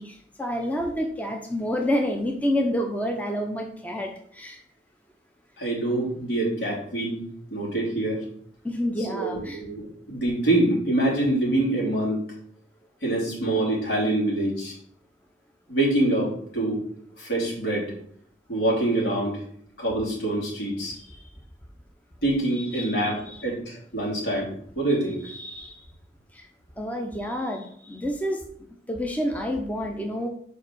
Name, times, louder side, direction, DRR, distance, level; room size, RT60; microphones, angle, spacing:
voice 1, 0.0-4.6 8.6-9.6 22.5-22.9 23.3-23.4 25.2-25.8 26.3-26.5 26.8-28.4 28.9-30.3, equal, 10° left, 2 dB, 0.7 m, -29 dB
voice 2, 5.6-7.2 7.5-8.2 9.1-12.2 13.0-14.7 15.7-16.8 17.2-17.9 18.5-19.4 19.8-21.1 22.2-25.2, right 1 dB, 75° left, -3 dB, 3.2 m, -25 dB
5.0 x 4.7 x 6.2 m, 0.64 s
head